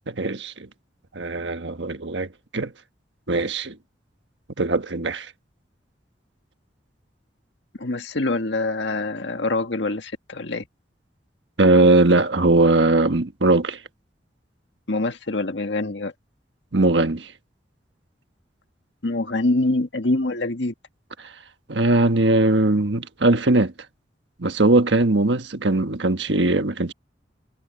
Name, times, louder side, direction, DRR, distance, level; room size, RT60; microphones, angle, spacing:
voice 1, 0.1-0.7 1.1-2.7 3.3-3.7 4.6-5.3 11.6-13.8 16.7-17.3 21.7-23.7 24.4-26.9, right 2 dB, 75° right, 1.4 m, -20 dB
voice 2, 7.8-10.6 14.9-16.1 19.0-20.7, left 2 dB, 75° left, 1.7 m, -25 dB
head